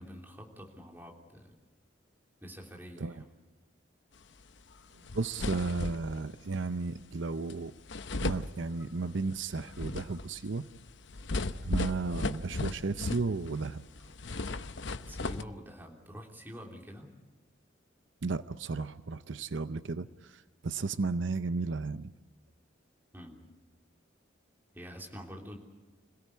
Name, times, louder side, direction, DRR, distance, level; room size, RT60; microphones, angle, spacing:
voice 1, 0.0-1.5 2.4-3.3 15.1-17.1 23.1-23.4 24.7-25.6, equal, 10° right, 0 dB, 3.3 m, -47 dB
sound 1, 4.7-4.8 5.1-6.3 7.5-7.6 7.9-9.1 9.5-13.7 14.0-15.4, left 2 dB, 70° left, 0.8 m, -36 dB
voice 2, 5.1-7.7 8.2-10.7 11.6-13.8 18.2-22.1, right 3 dB, 75° right, 12 dB, 0.7 m, -34 dB
26.5 x 17.5 x 8.4 m, 1.2 s
head